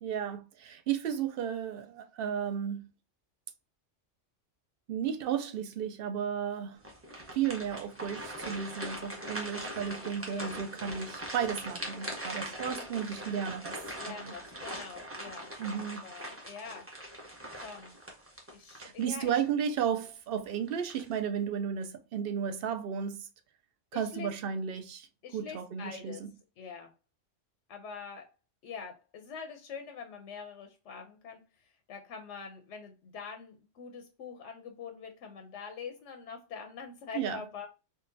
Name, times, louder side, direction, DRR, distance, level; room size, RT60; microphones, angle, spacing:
voice 1, 0.0-2.9 4.9-6.8 7.3-13.8 14.1-14.3 15.6-16.1 18.8-23.3 23.9-25.1 25.3-26.3 37.1-37.4, right 8 dB, 60° right, 0.7 m, -34 dB
sound 1, 6.8-19.5 19.9-20.1 20.7-21.2, right 1 dB, 15° right, 0.6 m, -41 dB
voice 2, 10.3-10.6 14.0-15.5 15.9-16.9 17.5-17.9 18.5-19.3 23.9-24.3 25.2-26.2 26.6-26.9 27.7-28.3 28.6-31.4 31.9-37.7, left 6 dB, 80° left, 0.9 m, -44 dB
3.7 x 2.3 x 2.6 m
omnidirectional pair, 1.2 m